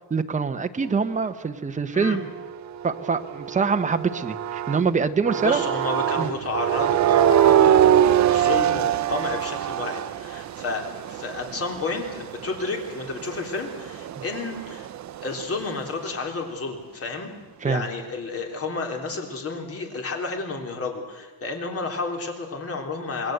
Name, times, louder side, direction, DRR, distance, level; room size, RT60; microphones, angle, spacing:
voice 1, 0.1-2.2 2.8-5.6 6.2-6.3 17.6-17.9, right 5 dB, 20° right, 8 dB, 1.0 m, -24 dB
sound 1, 2.0-4.9 5.3-15.7, right 10 dB, 45° right, 0.7 m, -24 dB
voice 2, 5.4-14.9 15.2-17.3 17.6-23.3, left 3 dB, 35° left, 2 dB, 3.7 m, -31 dB
27.5 x 20.5 x 8.0 m, 1.3 s
cardioid pair, 170°, 40 cm